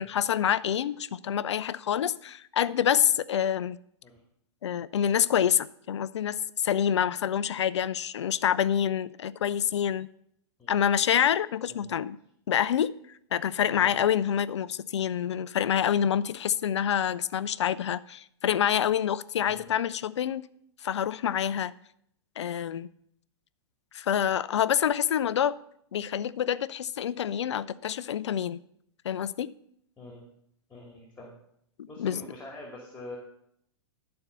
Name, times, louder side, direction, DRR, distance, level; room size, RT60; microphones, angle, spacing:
voice 1, 0.0-3.8 4.6-10.1 10.7-12.2 12.5-12.9 13.3-20.4 20.8-21.7 22.4-22.9 23.9-25.6 25.9-28.6 29.0-29.5 32.0-32.2, left 9 dB, 80° left, 0.5 m, -27 dB
voice 2, 30.7-31.3 31.9-33.2, left 2 dB, 10° left, 2.5 m, -45 dB
12.0 x 4.4 x 6.8 m
hypercardioid pair, 120°, 14 cm